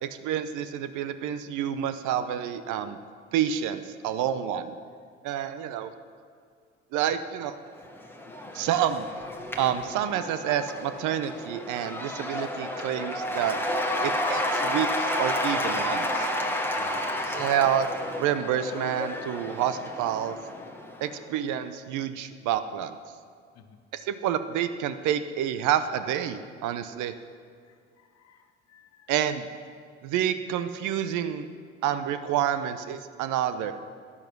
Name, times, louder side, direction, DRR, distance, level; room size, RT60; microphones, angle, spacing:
voice 1, 0.0-3.0 3.3-4.7 5.2-5.9 6.9-7.6 8.5-9.1 9.6-13.6 14.0-16.3 17.2-17.9 18.2-20.4 21.0-23.0 23.9-27.1 29.1-29.5 30.0-31.5 31.8-33.7, right 10 dB, 55° right, 12 dB, 0.8 m, -28 dB
Cheering / Applause / Crowd, 7.8-21.2, left 1 dB, 5° left, 1.4 m, -31 dB
voice 2, 27.7-29.1, left 7 dB, 45° left, 8 dB, 1.2 m, -56 dB
11.5 x 9.9 x 6.0 m, 2.1 s
hypercardioid pair, 60°, 36 cm